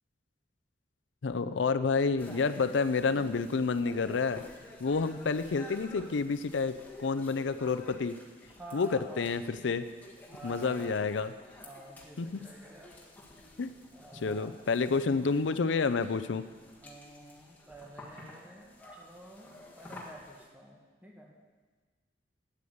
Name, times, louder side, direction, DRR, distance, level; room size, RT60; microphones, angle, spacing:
voice 1, 1.2-4.4 4.8-8.1 8.7-9.8 10.4-11.3 12.2-12.4 13.6-13.7 14.2-16.4, left 4 dB, 80° left, 11 dB, 0.5 m, -29 dB
sound 1, 2.2-20.4, left 1 dB, 10° left, 1.6 m, -51 dB
voice 2, 8.5-9.3 10.3-11.2 11.6-12.9 13.9-14.6 16.8-21.4, right 1 dB, 10° right, -1 dB, 1.6 m, -50 dB
9.2 x 8.5 x 8.0 m, 1.4 s
head